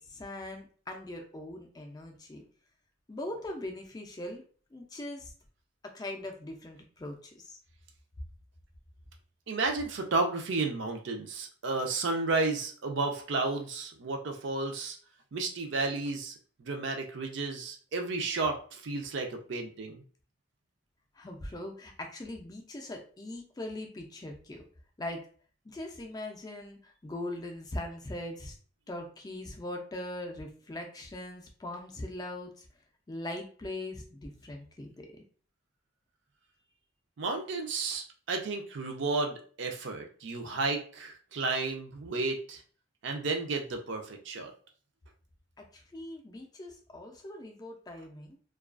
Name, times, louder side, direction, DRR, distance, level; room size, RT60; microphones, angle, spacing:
voice 1, 0.0-2.5 3.1-4.4 4.7-5.3 5.8-7.6 21.1-24.7 25.0-25.3 25.6-28.6 28.9-32.7 33.1-35.2 45.6-48.4, left 1 dB, 20° left, 3 dB, 0.3 m, -41 dB
voice 2, 9.5-15.0 15.3-16.3 16.6-20.0 37.2-42.6 43.0-44.5, right 3 dB, 70° right, 3 dB, 0.5 m, -32 dB
2.3 x 2.3 x 2.3 m, 0.42 s
head